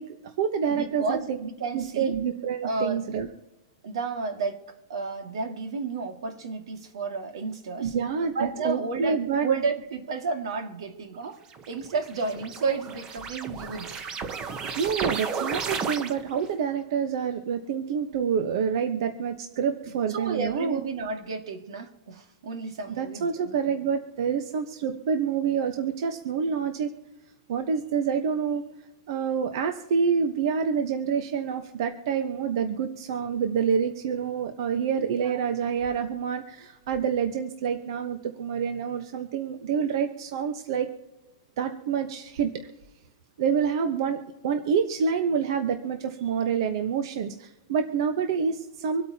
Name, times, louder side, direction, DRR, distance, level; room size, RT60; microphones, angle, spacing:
voice 1, 0.0-1.4 1.7-3.3 7.8-9.5 14.8-20.8 22.9-26.9 27.5-28.6 29.1-40.9 41.6-42.5 43.4-44.2 44.4-49.0, right 6 dB, 55° right, 6 dB, 1.1 m, -27 dB
voice 2, 0.7-2.1 2.6-3.1 3.8-4.6 4.9-7.9 8.4-11.4 11.7-14.0 20.1-23.8 35.2-35.4, right 4 dB, 80° right, 5 dB, 2.1 m, -32 dB
sound 1, 11.5-16.5, right 5 dB, 25° right, 0.9 m, -33 dB
26.0 x 8.7 x 2.9 m, 1.0 s
supercardioid pair, 160°, 3 cm